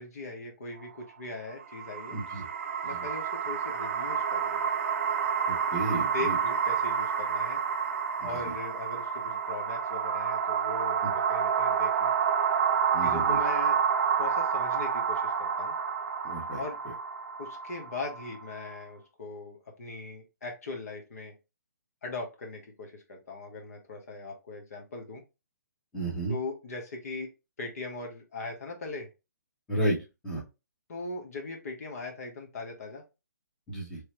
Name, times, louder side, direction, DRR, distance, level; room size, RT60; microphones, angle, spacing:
voice 1, 0.0-2.2 2.8-4.7 6.1-7.6 8.2-12.1 13.0-13.8 14.2-15.8 16.6-16.8 17.4-21.3 22.0-25.2 26.3-27.3 27.6-29.1 30.9-33.0, left 3 dB, 60° left, 2 dB, 1.2 m, -40 dB
sound 1, 1.6-18.8, right 7 dB, 45° right, 0.4 m, -29 dB
voice 2, 2.1-2.5 2.8-3.0 5.5-6.4 11.0-11.1 12.9-13.4 16.2-16.6 25.9-26.3 29.7-30.0 30.2-30.4 33.7-34.0, right 1 dB, 10° left, -5 dB, 1.2 m, -32 dB
3.3 x 2.8 x 3.1 m, 0.26 s
hypercardioid pair, 160°, 10 cm